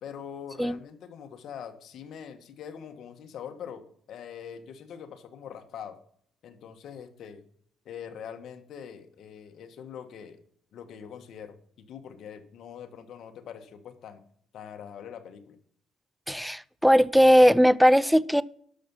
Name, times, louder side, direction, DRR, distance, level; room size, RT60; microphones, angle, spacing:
voice 1, 0.0-6.0 6.4-7.4 7.8-10.4 10.7-14.2 14.5-15.6, left 8 dB, 60° left, 7 dB, 1.4 m, -43 dB
voice 2, 16.3-18.4, equal, ahead, 19 dB, 0.4 m, -19 dB
12.0 x 6.0 x 5.5 m, 0.63 s
cardioid pair, 120°, 0 cm